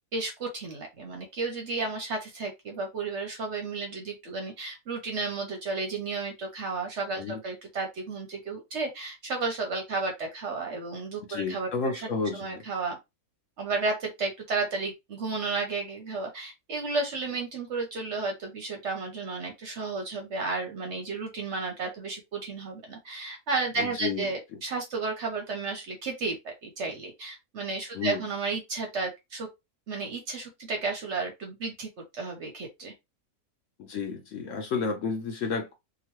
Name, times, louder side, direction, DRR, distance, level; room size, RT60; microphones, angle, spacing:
voice 1, 0.1-12.0 12.3-13.0 13.6-29.5 29.9-32.9, right 3 dB, 60° right, 0.8 m, -33 dB
voice 2, 11.3-12.6 23.8-24.3 27.9-28.2 33.8-35.7, left 5 dB, 65° left, 0.9 m, -31 dB
2.9 x 2.4 x 2.9 m
omnidirectional pair, 1.7 m